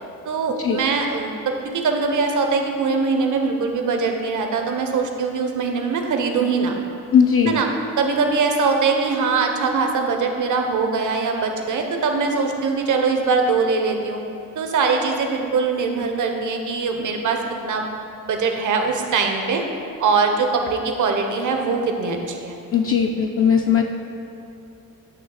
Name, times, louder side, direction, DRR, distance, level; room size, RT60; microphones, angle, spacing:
voice 1, 0.2-6.7 7.5-7.7 8.0-14.2 14.5-17.9 18.2-19.6 20.0-22.6, right 4 dB, 65° right, 3 dB, 0.9 m, -22 dB
voice 2, 7.1-7.6 22.7-23.8, left 7 dB, 45° left, 2 dB, 0.4 m, -18 dB
9.1 x 3.2 x 6.4 m, 2.8 s
cardioid pair, 110°, 32 cm